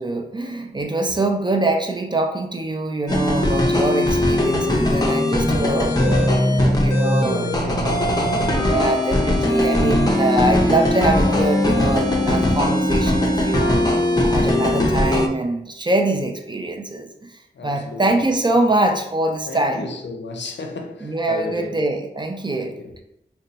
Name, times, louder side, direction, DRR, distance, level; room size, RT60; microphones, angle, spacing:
voice 1, 0.0-5.9 6.6-7.5 8.2-13.8 14.2-17.3 17.6-19.9 21.0-22.8, right 2 dB, 25° right, 0.5 m, -23 dB
sound 1, 3.1-15.3, left 1 dB, 20° left, 0.6 m, -19 dB
voice 2, 5.6-8.8 17.5-18.3 19.5-21.8 22.6-22.9, left 2 dB, 85° left, 0.5 m, -33 dB
2.7 x 2.3 x 3.8 m
wide cardioid pair, 55°, 18 cm